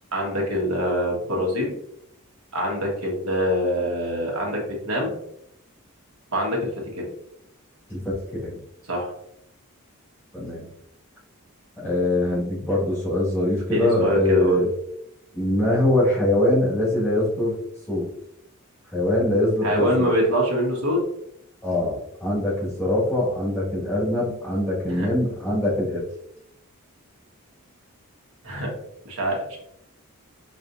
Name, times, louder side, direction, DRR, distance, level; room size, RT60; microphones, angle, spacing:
voice 1, 0.1-1.8 2.5-5.1 6.3-6.7 7.0-7.1 8.9-9.1 13.7-14.6 19.6-21.0 24.9-25.1 28.4-28.7 29.0-29.6, equal, 75° right, -1 dB, 1.4 m, -24 dB
voice 2, 7.9-8.6 10.3-10.7 11.8-14.7 15.3-17.6 17.9-18.1 18.9-20.1 21.6-26.0, left 1 dB, 10° left, -7 dB, 1.7 m, -23 dB
5.3 x 3.3 x 2.6 m, 0.75 s
head